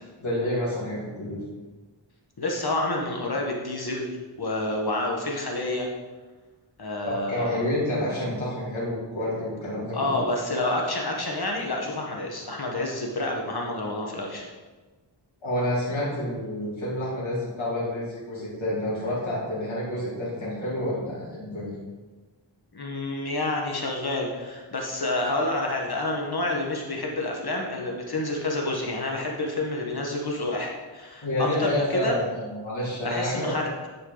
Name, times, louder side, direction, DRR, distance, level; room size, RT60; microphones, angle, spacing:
voice 1, 0.2-1.4 7.0-10.2 15.4-21.8 31.2-33.5, left 1 dB, 85° left, -9 dB, 2.6 m, -29 dB
voice 2, 2.4-4.1 4.4-5.9 6.8-7.5 9.9-14.5 22.7-32.2 33.0-33.6, left 2 dB, 55° left, -1 dB, 1.3 m, -28 dB
9.9 x 4.7 x 3.9 m, 1.3 s
wide cardioid pair, 50°, 46 cm